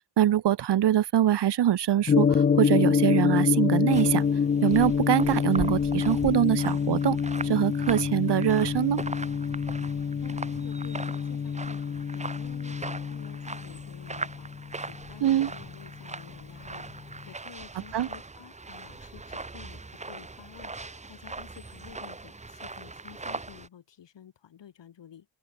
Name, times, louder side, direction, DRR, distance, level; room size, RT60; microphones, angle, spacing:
voice 1, 0.2-4.2 4.6-7.2 7.4-9.0 15.2-15.5 17.9-18.1, right 11 dB, 60° right, 1.3 m, -24 dB
Gong, 2.1-16.2, left 6 dB, 25° left, 0.4 m, -27 dB
sound 1, 3.9-23.7, right 3 dB, 15° right, 1.4 m, -40 dB
voice 2, 9.9-25.3, left 9 dB, 65° left, 6.1 m, -50 dB
open air
wide cardioid pair, 140°, 47 cm